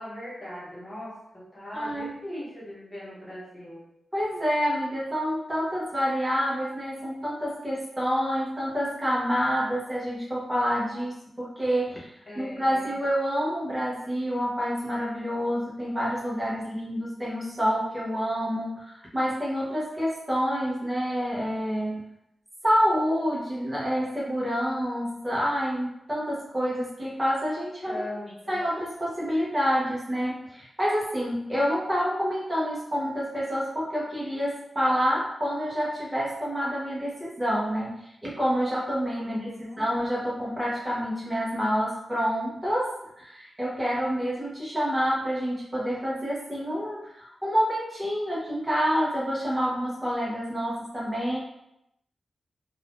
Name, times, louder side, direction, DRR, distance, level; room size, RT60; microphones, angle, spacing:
voice 1, 0.0-3.9 12.2-12.9 27.8-28.6 39.2-39.9, left 1 dB, 25° left, -8 dB, 1.1 m, -40 dB
voice 2, 1.7-2.1 4.1-12.1 12.4-22.1 22.6-28.1 28.5-51.4, equal, 10° right, -6 dB, 0.8 m, -28 dB
2.7 x 2.4 x 3.4 m, 0.82 s
wide cardioid pair, 180°, 0 cm